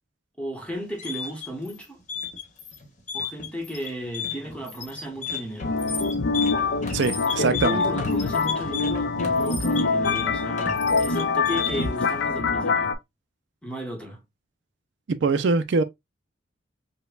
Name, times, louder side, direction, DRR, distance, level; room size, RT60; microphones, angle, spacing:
voice 1, 0.4-2.0 3.1-5.8 7.2-13.0 13.6-14.2, equal, 5° left, 1.0 m, -34 dB
sound 1, 0.7-12.1, left 6 dB, 40° left, 0.9 m, -34 dB
sound 2, 4.2-10.1, left 1 dB, 40° right, 0.9 m, -48 dB
sound 3, 5.6-12.9, left 4 dB, 65° left, 0.4 m, -24 dB
voice 2, 6.9-7.8 15.1-15.8, right 4 dB, 65° right, 0.4 m, -23 dB
5.2 x 2.1 x 2.3 m
head